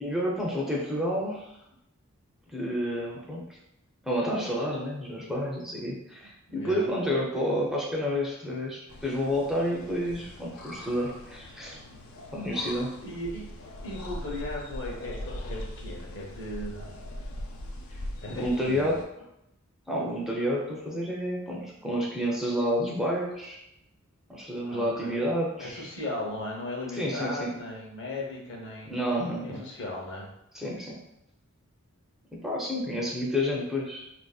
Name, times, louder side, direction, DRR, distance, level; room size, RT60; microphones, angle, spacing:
voice 1, 0.0-1.6 2.5-3.4 4.0-11.8 12.3-12.9 18.3-19.0 19.9-23.6 24.3-25.9 26.9-27.5 28.9-29.6 30.5-31.0 32.3-34.1, equal, ahead, -4 dB, 0.4 m, -30 dB
voice 2, 6.5-6.9 13.0-13.5 13.8-16.9 18.2-18.9 24.6-25.3 25.6-28.9 29.4-30.3, left 1 dB, 60° left, -2 dB, 0.8 m, -37 dB
sound 1, 8.9-19.0, left 1 dB, 85° left, 0.5 m, -41 dB
3.8 x 2.6 x 2.3 m, 0.82 s
head